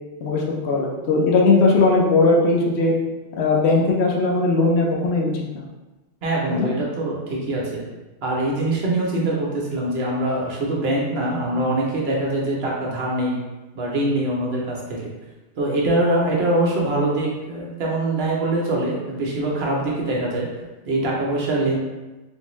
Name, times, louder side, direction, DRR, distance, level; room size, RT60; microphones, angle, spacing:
voice 1, 0.2-2.9 3.4-5.7 6.5-6.7, left 3 dB, 70° left, -2 dB, 0.9 m, -19 dB
voice 2, 6.2-7.8 8.2-13.4 13.7-15.1 15.6-20.5 20.9-21.8, right 1 dB, 60° right, -3 dB, 1.0 m, -23 dB
3.6 x 2.5 x 3.0 m, 1.1 s
omnidirectional pair, 1.2 m